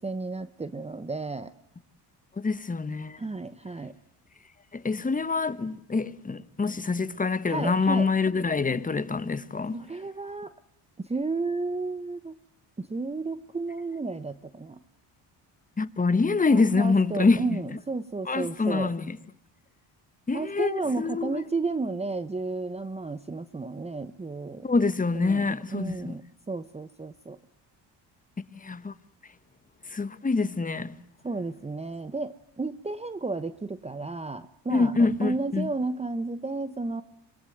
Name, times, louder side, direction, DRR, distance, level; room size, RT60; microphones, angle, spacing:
voice 1, 0.0-1.5 3.2-3.9 7.5-8.1 9.7-10.5 11.0-12.3 12.8-14.8 16.5-18.9 20.3-24.7 25.1-25.5 25.7-27.4 31.2-37.0, right 3 dB, 15° right, 1.0 m, -32 dB
voice 2, 2.4-3.2 4.7-9.8 15.8-17.6 18.3-19.2 20.3-21.4 24.6-26.1 28.5-28.9 29.9-30.9 34.7-35.7, left 4 dB, 20° left, 1.4 m, -26 dB
25.0 x 22.0 x 9.3 m
cardioid pair, 100°, 42 cm